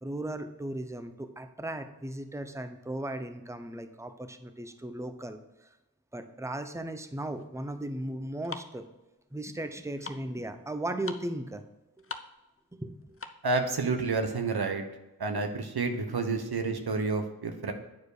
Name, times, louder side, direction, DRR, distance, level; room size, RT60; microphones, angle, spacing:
voice 1, 0.0-5.8 6.1-8.8 9.3-11.6 12.7-13.2, right 1 dB, 10° right, 8 dB, 0.7 m, -37 dB
sound 1, 7.3-13.6, left 4 dB, 35° left, 0.7 m, -45 dB
voice 2, 13.4-14.8 15.2-17.7, right 3 dB, 90° right, 5 dB, 1.0 m, -29 dB
9.2 x 4.6 x 4.8 m, 0.98 s
wide cardioid pair, 50°, 37 cm